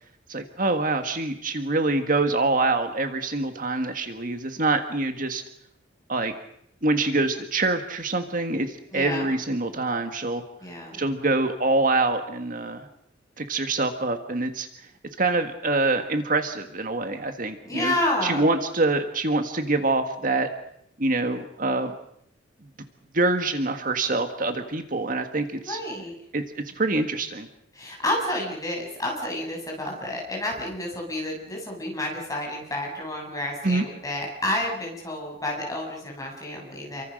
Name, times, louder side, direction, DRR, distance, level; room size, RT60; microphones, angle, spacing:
voice 1, 0.3-5.4 6.1-6.3 6.8-10.4 10.9-12.9 13.4-14.7 15.2-17.9 18.2-20.5 21.0-21.9 23.1-25.8 26.3-27.5 33.6-33.8, right 2 dB, 45° right, 7 dB, 1.7 m, -25 dB
voice 2, 8.9-9.3 10.6-11.0 17.6-18.5 25.6-26.1 27.8-37.0, left 1 dB, 20° left, 0 dB, 7.5 m, -30 dB
29.5 x 24.0 x 6.5 m, 0.74 s
head